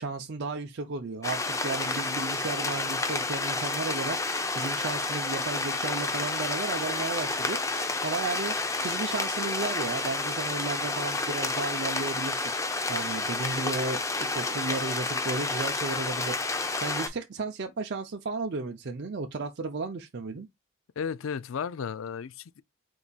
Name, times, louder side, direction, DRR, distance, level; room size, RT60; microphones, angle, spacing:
voice 1, 0.0-12.5 12.9-20.5, right 3 dB, 50° right, 0.5 m, -34 dB
sound 1, 1.2-17.1, left 3 dB, 15° left, 0.5 m, -30 dB
voice 2, 21.0-22.6, left 6 dB, 70° left, 0.4 m, -34 dB
4.6 x 4.0 x 2.3 m
head